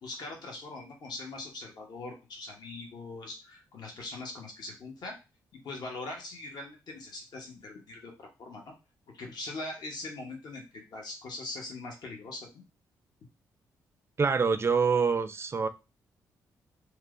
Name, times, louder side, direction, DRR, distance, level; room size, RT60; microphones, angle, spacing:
voice 1, 0.0-5.2 5.5-8.7 9.1-12.6, left 2 dB, 60° left, 0.8 m, -41 dB
voice 2, 14.2-15.7, right 5 dB, 30° right, 0.3 m, -25 dB
2.9 x 2.0 x 2.4 m
supercardioid pair, 55°, 8 cm